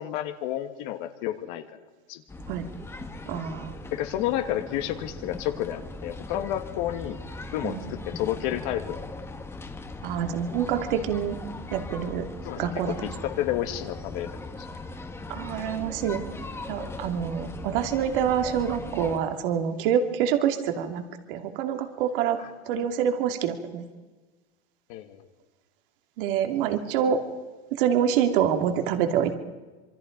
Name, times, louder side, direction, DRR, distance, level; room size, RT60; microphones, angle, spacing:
voice 1, 0.0-1.6 2.1-2.2 3.9-7.2 7.5-9.0 12.4-14.3 14.6-14.7 22.4-22.5 24.9-25.3, left 12 dB, 50° left, 6 dB, 1.9 m, -30 dB
sound 1, 2.3-19.2, left 2 dB, 10° left, 1.6 m, -39 dB
voice 2, 3.3-3.7 7.6-7.8 10.0-11.4 11.7-12.3 12.6-13.1 15.3-16.2 16.7-21.0 21.3-23.8 26.2-27.2 27.8-29.3, right 8 dB, 55° right, 7 dB, 2.7 m, -26 dB
27.0 x 24.0 x 5.3 m, 1.3 s
supercardioid pair, 150°, 31 cm